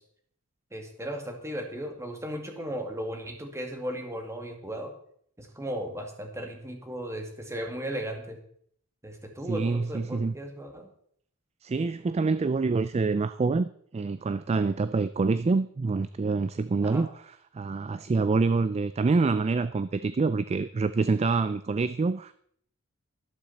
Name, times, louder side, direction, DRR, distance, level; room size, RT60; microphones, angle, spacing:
voice 1, 0.7-4.9 5.4-8.4 9.0-10.9 16.8-17.1, equal, 15° right, 2.1 m, -36 dB
voice 2, 9.5-10.3 11.6-22.3, right 4 dB, 30° right, 0.3 m, -26 dB
12.0 x 11.5 x 4.2 m
head